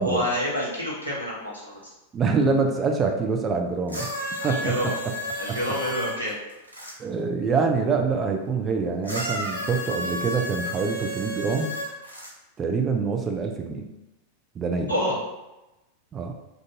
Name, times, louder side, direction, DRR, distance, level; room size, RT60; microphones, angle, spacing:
voice 1, 0.0-1.8 4.4-4.9 5.4-6.4 14.9-15.2, equal, 90° right, -6 dB, 1.0 m, -28 dB
voice 2, 2.1-4.1 4.4-4.9 5.5-5.6 7.0-11.7 12.6-13.9 14.6-14.9 16.1-16.3, right 4 dB, 25° right, 3 dB, 0.4 m, -25 dB
sound 1, 3.9-6.9 9.0-12.3 13.2-13.3, equal, 90° left, 0.6 m, -32 dB
2.5 x 2.4 x 3.9 m, 0.97 s
figure-of-eight pair, 90°, 0 cm